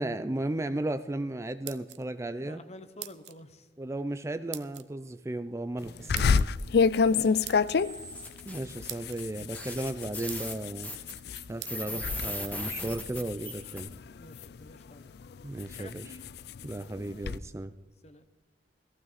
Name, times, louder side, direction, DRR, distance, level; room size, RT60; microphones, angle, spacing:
voice 1, 0.0-2.6 3.8-6.5 8.5-10.9 11.5-13.9 15.4-16.2 16.6-17.7, right 1 dB, 15° right, 11 dB, 0.4 m, -35 dB
sound 1, 1.4-2.3 3.0-3.4 4.5-4.9 6.2-6.5 7.4-7.8 8.5-8.6 8.9-9.2 9.8-9.9 10.3-10.6 11.6-11.8, right 14 dB, 75° right, 0.8 m, -42 dB
voice 2, 2.4-3.7 5.8-6.1 7.1-7.4 9.4-9.5 11.8-12.4 14.2-15.1 15.8-15.9 17.4-17.6 18.0-18.2, left 1 dB, 40° left, 10 dB, 1.0 m, -50 dB
sound 2, 6.1-11.5 11.8-12.3 12.6-14.6 15.2-17.4, left 5 dB, 60° left, 0.4 m, -28 dB
sound 3, 7.8-8.6 9.2-9.3 9.5-13.8, left 1 dB, 10° left, 1.8 m, -38 dB
17.5 x 15.0 x 4.1 m, 1.2 s
head